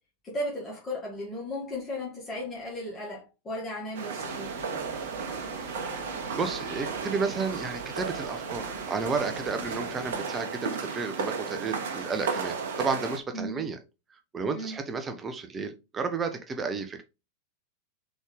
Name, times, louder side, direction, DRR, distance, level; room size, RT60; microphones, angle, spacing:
voice 1, 0.2-4.5 13.3-13.6 14.5-14.8, left 1 dB, 20° left, 1.5 m, -35 dB
sound 1, 3.9-13.2, right 5 dB, 55° right, 0.9 m, -34 dB
sound 2, 4.2-10.9, equal, ahead, 2.4 m, -45 dB
voice 2, 6.4-13.8 14.3-17.0, right 4 dB, 20° right, 0.6 m, -32 dB
3.9 x 3.6 x 3.7 m
figure-of-eight pair, 90°, 0 cm